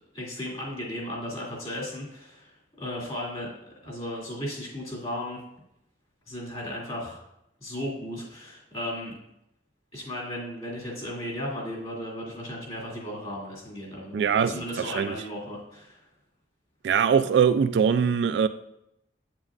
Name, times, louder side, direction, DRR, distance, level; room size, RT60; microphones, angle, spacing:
voice 1, 0.1-3.5 3.8-5.4 6.3-7.2 7.6-9.1 9.9-16.0, left 1 dB, 35° left, 2.5 m, -35 dB
voice 2, 14.1-15.2 16.8-18.5, right 7 dB, 75° right, 0.3 m, -22 dB
8.1 x 7.4 x 2.5 m
head